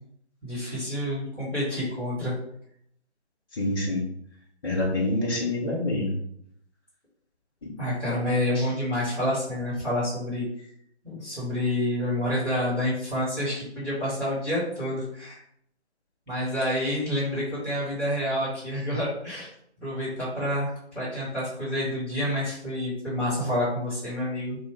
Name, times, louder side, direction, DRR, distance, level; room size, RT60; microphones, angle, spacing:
voice 1, 0.4-2.3 7.8-10.6 11.0-15.4 16.3-19.5 19.8-24.6, left 1 dB, 5° left, -14 dB, 1.9 m, -28 dB
voice 2, 3.5-4.0 4.6-6.1, left 1 dB, 20° left, -5 dB, 0.9 m, -26 dB
6.0 x 2.4 x 3.6 m, 0.72 s
figure-of-eight pair, 145°, 35 cm